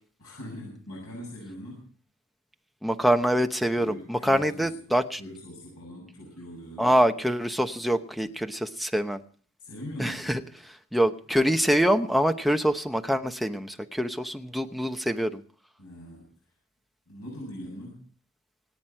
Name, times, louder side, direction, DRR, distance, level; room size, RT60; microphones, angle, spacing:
voice 1, 0.2-1.9 3.8-4.7 5.2-7.0 9.6-10.4 15.8-16.3 17.1-18.0, equal, 90° left, -2 dB, 7.7 m, -41 dB
voice 2, 2.8-5.2 6.8-9.2 10.0-10.4 10.9-15.4, equal, ahead, 6 dB, 0.9 m, -25 dB
26.5 x 9.5 x 4.6 m, 0.43 s
head